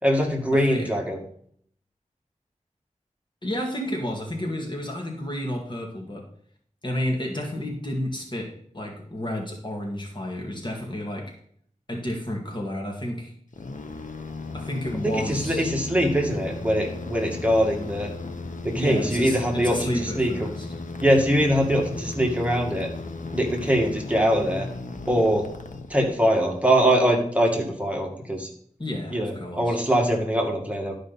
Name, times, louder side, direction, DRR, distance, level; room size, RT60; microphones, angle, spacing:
voice 1, 0.0-1.2 15.0-18.1 18.6-20.5 21.0-22.9 23.3-24.7 25.1-25.5 25.9-28.5 29.1-30.9, equal, 10° right, 0 dB, 2.0 m, -23 dB
voice 2, 0.5-0.9 3.4-6.2 6.8-8.5 8.7-11.3 11.9-13.3 14.5-15.7 18.7-20.7 28.8-29.8, equal, 35° left, 0 dB, 2.0 m, -31 dB
sound 1, 13.5-26.4, left 3 dB, 85° left, 0.9 m, -36 dB
12.0 x 5.2 x 4.1 m, 0.63 s
wide cardioid pair, 55°, 13 cm